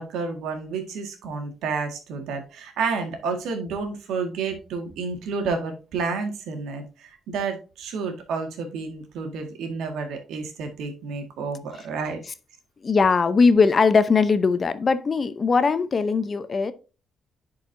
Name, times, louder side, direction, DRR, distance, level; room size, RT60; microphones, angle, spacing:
voice 1, 0.0-12.2, right 4 dB, 85° right, 1.8 m, -30 dB
voice 2, 12.8-16.7, left 4 dB, 40° left, 0.7 m, -20 dB
10.5 x 4.8 x 2.6 m
cardioid pair, 90°, 0 cm